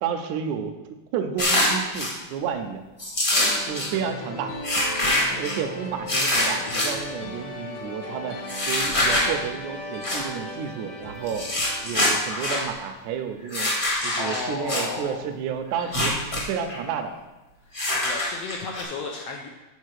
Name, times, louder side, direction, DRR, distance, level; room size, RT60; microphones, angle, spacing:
voice 1, 0.0-0.7 1.1-2.8 3.7-4.5 5.4-11.5 11.8-13.7 14.0-17.1, right 7 dB, 80° right, 5 dB, 2.0 m, -31 dB
sound 1, 1.4-2.1 3.0-3.9 4.6-5.6 6.1-6.9 8.5-9.3 10.0-10.2 11.3-12.6 13.5-14.8 15.8-16.4 16.7-16.8 17.7-18.8, left 1 dB, 30° left, 1.0 m, -24 dB
sound 2, 3.3-12.0, left 1 dB, 90° left, 0.9 m, -37 dB
voice 2, 14.1-15.2 17.9-19.5, left 4 dB, 75° left, 1 dB, 1.5 m, -33 dB
7.3 x 4.8 x 6.4 m, 1.1 s
omnidirectional pair, 3.5 m